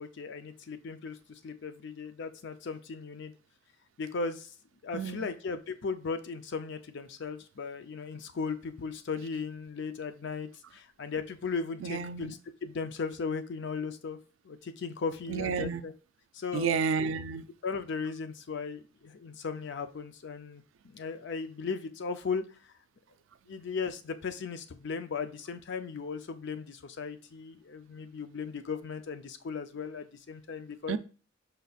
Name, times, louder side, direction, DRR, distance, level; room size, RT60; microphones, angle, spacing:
voice 1, 0.0-3.3 4.0-4.5 4.8-14.2 14.4-15.9 16.3-16.8 17.6-22.7 23.5-31.0, left 5 dB, 65° left, 0.5 m, -37 dB
voice 2, 4.9-5.2 11.8-12.3 15.3-15.8 16.5-17.5 30.9-31.0, right 5 dB, 80° right, 0.4 m, -31 dB
5.2 x 4.0 x 2.4 m
head